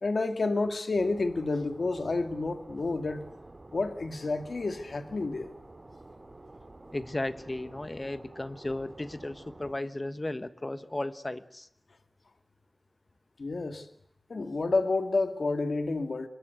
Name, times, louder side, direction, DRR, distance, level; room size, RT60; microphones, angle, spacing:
voice 1, 0.0-3.2 3.7-5.5 13.4-13.9 14.3-16.3, left 3 dB, 75° left, 2.1 m, -29 dB
sound 1, 1.0-9.8, right 2 dB, 40° right, 3.6 m, -50 dB
voice 2, 6.9-11.7, left 1 dB, 30° left, 1.4 m, -35 dB
26.0 x 22.0 x 8.0 m
wide cardioid pair, 80°, 0 cm